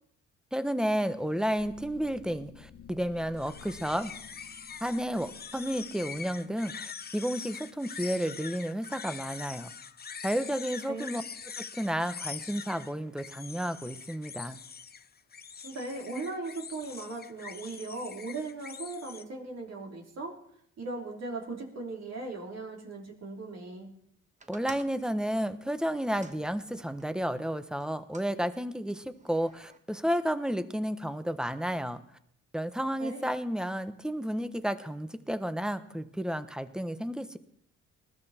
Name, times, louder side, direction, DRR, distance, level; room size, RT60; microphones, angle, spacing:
voice 1, 0.5-4.1 4.8-9.7 10.2-11.2 11.6-14.6 24.5-32.0 32.5-37.4, equal, ahead, 11 dB, 1.1 m, -32 dB
sound 1, 1.6-7.6, left 8 dB, 85° left, 1.9 m, -54 dB
sound 2, 3.4-19.2, left 6 dB, 30° left, 0.8 m, -44 dB
voice 2, 15.6-20.4 20.8-23.9 33.0-33.3, right 3 dB, 55° right, 0 dB, 3.8 m, -38 dB
sound 3, 24.4-27.2 27.8-28.3 29.1-29.8, right 3 dB, 25° right, 1.3 m, -52 dB
20.0 x 14.0 x 4.4 m, 0.71 s
cardioid pair, 90°, 30 cm